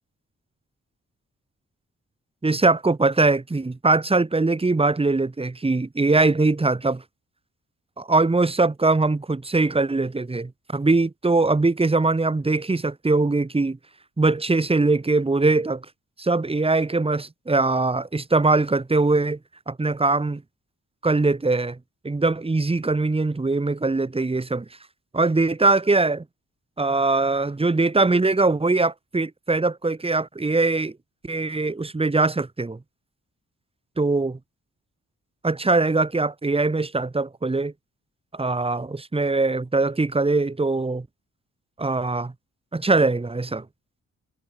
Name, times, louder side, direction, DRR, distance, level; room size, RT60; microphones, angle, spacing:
voice 1, 2.4-7.0 8.0-13.8 14.2-15.8 16.2-19.4 19.7-20.4 21.0-21.8 22.0-24.7 25.1-26.2 26.8-30.9 31.2-32.8 34.0-34.4 35.4-37.7 38.3-41.1 41.8-42.3 42.7-43.7, right 3 dB, 20° right, 1.9 m, -22 dB
wide cardioid pair, 115°, 29 cm